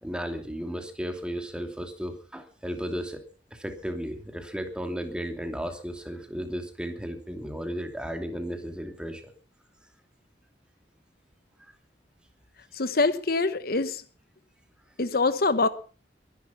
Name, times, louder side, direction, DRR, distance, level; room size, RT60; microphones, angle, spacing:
voice 1, 0.0-3.2 3.5-9.3, equal, 5° right, 2.9 m, -34 dB
voice 2, 12.7-14.0 15.0-15.7, left 3 dB, 55° left, 1.1 m, -24 dB
22.0 x 11.0 x 5.9 m
head